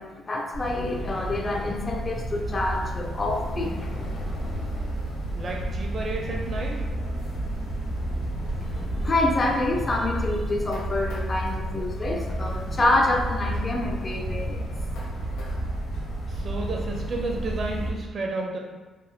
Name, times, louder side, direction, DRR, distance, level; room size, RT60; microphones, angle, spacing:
voice 1, 0.0-4.3 8.6-14.7, left 2 dB, 30° left, 1 dB, 0.4 m, -27 dB
sound 1, 0.5-17.9, right 1 dB, 85° left, 0.8 m, -31 dB
voice 2, 5.3-6.8 16.3-18.6, right 2 dB, 50° right, 0 dB, 0.6 m, -31 dB
3.5 x 2.7 x 2.2 m, 1.2 s
cardioid pair, 90°, 0 cm